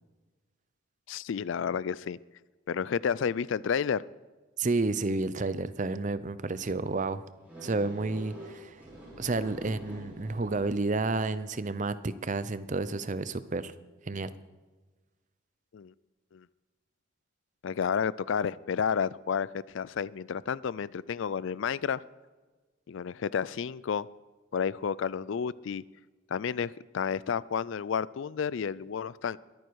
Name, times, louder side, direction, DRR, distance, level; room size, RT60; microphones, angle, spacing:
voice 1, 1.1-2.2 2.7-4.0 15.7-15.9 16.3-16.4 17.6-22.0 22.9-24.1 24.5-25.8 26.3-29.4, left 7 dB, 65° left, 20 dB, 0.4 m, -31 dB
voice 2, 4.6-7.2 7.6-8.8 9.2-13.7 14.1-14.3, right 3 dB, 35° right, 14 dB, 0.6 m, -31 dB
sound 1, 7.4-11.5, equal, 5° right, 5.2 m, -46 dB
22.5 x 9.3 x 4.7 m, 1.3 s
head